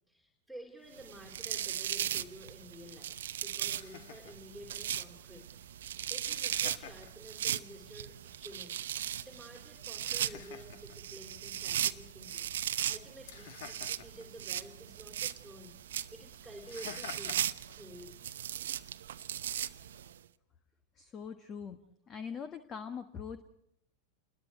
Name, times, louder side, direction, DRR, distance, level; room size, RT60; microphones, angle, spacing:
voice 1, 0.1-3.1 3.4-8.8 9.2-12.5 12.9-17.4 17.7-18.1, equal, 5° left, 0 dB, 3.5 m, -51 dB
sound 1, 1.0-20.1, right 11 dB, 60° right, 0.9 m, -38 dB
Laughter, 2.6-18.6, left 9 dB, 55° left, 1.5 m, -54 dB
voice 2, 20.9-21.8 22.1-23.4, left 6 dB, 25° left, 11 dB, 1.5 m, -42 dB
29.0 x 21.5 x 4.6 m, 0.76 s
figure-of-eight pair, 90°, 0 cm